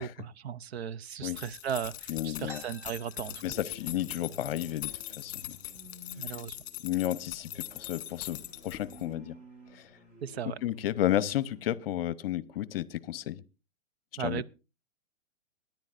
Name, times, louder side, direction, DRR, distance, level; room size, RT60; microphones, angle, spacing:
voice 1, 0.0-3.4 6.2-6.6 10.2-10.6 14.2-14.5, right 8 dB, 55° right, 0.6 m, -36 dB
sound 1, 1.3-9.1, left 14 dB, 20° left, 1.7 m, -42 dB
voice 2, 2.1-2.6 3.4-4.9 5.2-5.6 6.8-9.4 9.7-9.9 10.6-13.4 14.1-14.4, left 12 dB, 45° left, 0.8 m, -32 dB
sound 2, 2.4-4.1 4.4-4.5 4.8-5.4 6.0-6.1 6.8-7.0 7.5-7.9, left 2 dB, 5° right, 1.2 m, -50 dB
sound 3, 3.0-11.7, right 1 dB, 40° right, 6.2 m, -52 dB
23.5 x 10.5 x 2.5 m
hypercardioid pair, 140°, 39 cm